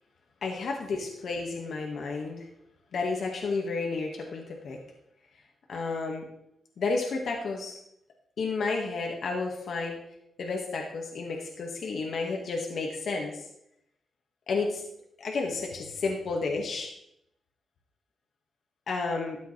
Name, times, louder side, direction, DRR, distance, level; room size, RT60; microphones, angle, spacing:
voice 1, 0.4-2.4 2.9-4.8 5.7-6.2 6.8-7.8 8.4-10.0 10.4-13.4 14.5-14.8 15.2-16.9 18.9-19.4, left 4 dB, 70° left, 0 dB, 1.7 m, -31 dB
12.5 x 8.3 x 3.3 m, 0.78 s
cardioid pair, 75°, 0 cm